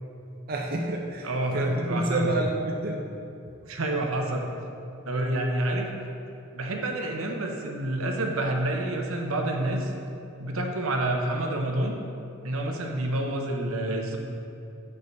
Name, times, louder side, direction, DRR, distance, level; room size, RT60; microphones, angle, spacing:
voice 1, 0.5-3.0, right 2 dB, 45° right, 0 dB, 0.5 m, -29 dB
voice 2, 1.2-2.3 3.6-4.5 5.1-5.9 6.5-9.9 10.4-11.9 12.4-14.2, right 1 dB, 80° right, 2 dB, 0.8 m, -28 dB
6.6 x 5.4 x 4.6 m, 2.6 s
head